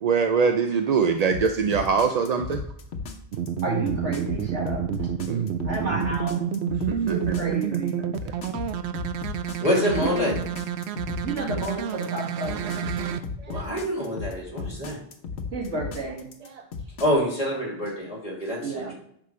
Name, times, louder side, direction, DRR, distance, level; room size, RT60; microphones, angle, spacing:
voice 1, 0.0-2.6 5.3-6.0 6.9-7.6 8.0-8.3 13.4-13.7 16.5-16.6 18.8-18.9, right 5 dB, 50° right, 6 dB, 0.5 m, -25 dB
sound 1, 1.3-17.1, left 5 dB, 80° left, 1.2 m, -35 dB
sound 2, 3.3-13.2, right 9 dB, 70° right, 0.8 m, -29 dB
voice 2, 3.6-5.1 5.6-6.5 7.0-8.0 10.0-10.3 11.2-12.9 15.5-16.3 18.6-18.9, right 2 dB, 90° right, -2 dB, 2.4 m, -31 dB
voice 3, 9.6-10.4 13.5-15.0 17.0-18.9, equal, 30° left, -2 dB, 2.8 m, -26 dB
9.5 x 5.9 x 3.2 m, 0.69 s
omnidirectional pair, 1.2 m